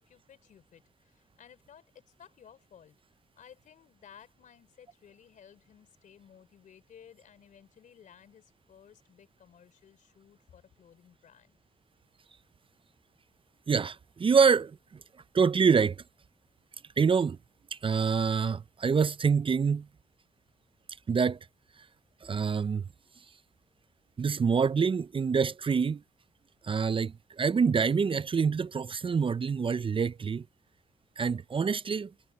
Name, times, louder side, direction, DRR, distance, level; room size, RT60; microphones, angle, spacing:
voice 1, 0.0-3.0 3.4-11.6, left 8 dB, 70° left, 3.8 m, -56 dB
voice 2, 13.7-14.8 15.3-16.0 17.0-17.4 17.7-19.9 21.1-21.4 22.2-22.8 24.2-26.0 26.6-30.4 31.2-32.1, right 5 dB, 40° right, 0.6 m, -26 dB
supercardioid pair, 55°, 14 cm